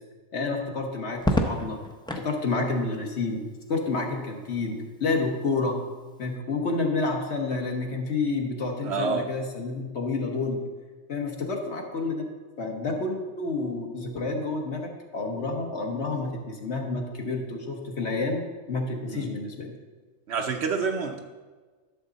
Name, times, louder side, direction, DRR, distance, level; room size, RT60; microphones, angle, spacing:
voice 1, 0.3-1.8 2.1-5.8 6.2-10.6 11.1-12.3 12.6-18.4 18.7-19.7, left 3 dB, 55° left, 2 dB, 1.4 m, -29 dB
Crackle, 1.2-2.3 3.9-4.5, left 1 dB, 5° left, 0.3 m, -28 dB
voice 2, 8.8-9.2 19.1-19.3 20.3-21.2, right 5 dB, 60° right, 4 dB, 0.9 m, -28 dB
11.5 x 6.6 x 4.0 m, 1.4 s
omnidirectional pair, 1.4 m